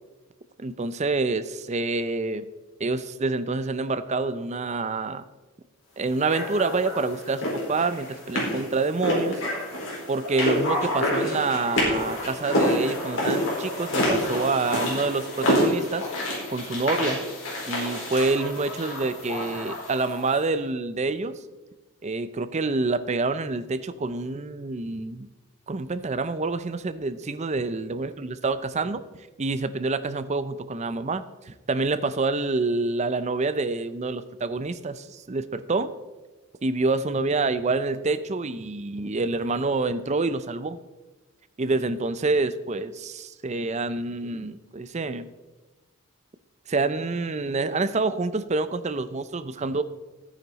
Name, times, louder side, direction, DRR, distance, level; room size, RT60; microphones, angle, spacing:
voice 1, 0.6-2.5 2.8-5.2 6.0-9.4 10.1-16.1 16.5-17.2 17.7-21.4 22.0-25.3 25.7-29.0 29.4-35.9 36.6-40.8 41.6-45.3 46.7-49.8, right 3 dB, 30° right, 12 dB, 0.5 m, -27 dB
sound 1, 6.3-20.4, left 1 dB, 60° left, 4.5 m, -28 dB
14.0 x 9.3 x 4.0 m, 1.2 s
head